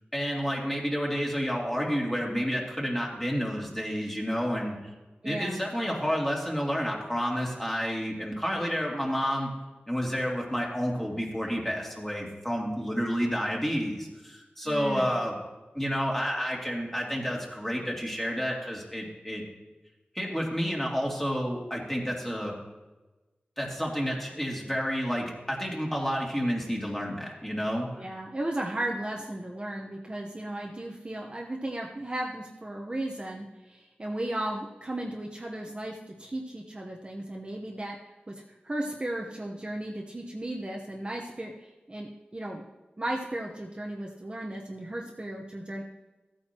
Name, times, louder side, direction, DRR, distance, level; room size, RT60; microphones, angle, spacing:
voice 1, 0.1-4.8 5.2-9.5 9.9-15.4 15.7-19.4 20.1-22.5 23.6-27.9, equal, 10° left, -2 dB, 2.6 m, -30 dB
voice 2, 5.2-5.6 14.6-15.1 28.0-38.0 38.3-38.4 38.6-42.6 43.0-45.8, right 1 dB, 30° right, -1 dB, 1.0 m, -35 dB
15.0 x 8.9 x 3.0 m, 1.1 s
wide cardioid pair, 70°, 4 cm